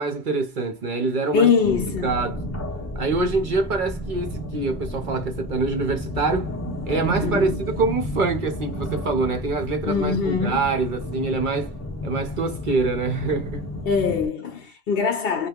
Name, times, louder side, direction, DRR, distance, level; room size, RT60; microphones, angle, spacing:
voice 1, 0.0-1.5 2.0-2.4 2.9-6.5 6.8-11.7 12.0-13.6, right 3 dB, 50° right, 0.7 m, -25 dB
voice 2, 1.3-2.2 7.2-7.6 9.8-10.6 13.9-15.5, left 6 dB, 55° left, 0.8 m, -22 dB
sound 1, 1.6-14.3, equal, 20° left, 0.5 m, -32 dB
2.7 x 2.3 x 3.5 m
omnidirectional pair, 1.3 m